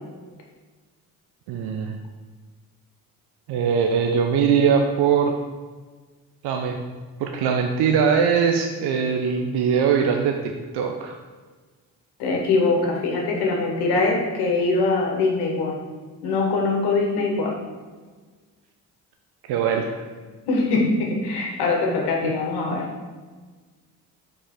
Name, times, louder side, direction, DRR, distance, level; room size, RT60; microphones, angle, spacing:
voice 1, 1.5-2.0 3.5-5.3 6.4-6.8 7.2-11.2 19.5-20.0 22.2-22.3, right 6 dB, 80° right, 3 dB, 0.6 m, -21 dB
voice 2, 12.2-15.8 16.2-17.5 20.5-22.9, left 3 dB, 85° left, 0 dB, 1.3 m, -22 dB
5.2 x 4.3 x 4.4 m, 1.4 s
supercardioid pair, 60°, 39 cm